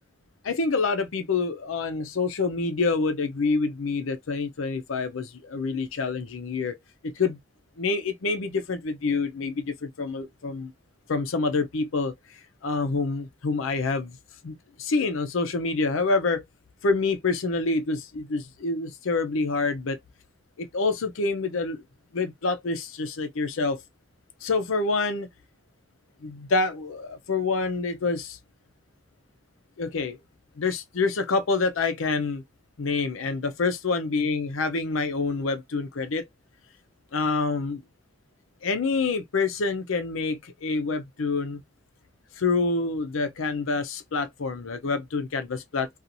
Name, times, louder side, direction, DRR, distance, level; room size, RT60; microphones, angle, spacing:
voice 1, 0.4-6.8 7.0-7.4 7.8-10.7 11.1-12.1 12.6-14.2 14.4-16.4 16.8-20.0 20.6-21.8 22.1-23.8 24.4-25.3 26.2-28.4 29.8-30.2 30.6-32.4 32.8-36.3 37.1-37.8 38.6-41.6 42.4-46.0, left 3 dB, 90° left, 0.6 m, -27 dB
2.6 x 2.4 x 2.7 m
head